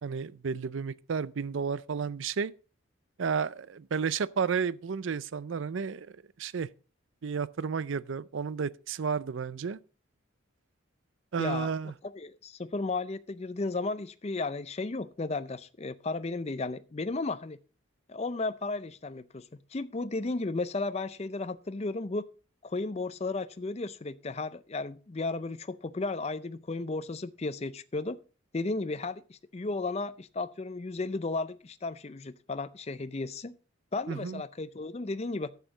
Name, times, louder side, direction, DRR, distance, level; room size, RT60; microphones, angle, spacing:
voice 1, 0.0-2.5 3.2-6.1 6.4-6.7 7.2-9.8 11.3-11.9 34.1-34.4, right 6 dB, 65° right, 0.4 m, -32 dB
voice 2, 11.4-11.7 12.1-17.6 18.1-22.2 22.6-28.2 28.5-33.5 33.9-35.5, left 3 dB, 30° left, 0.5 m, -34 dB
11.5 x 8.3 x 4.0 m
head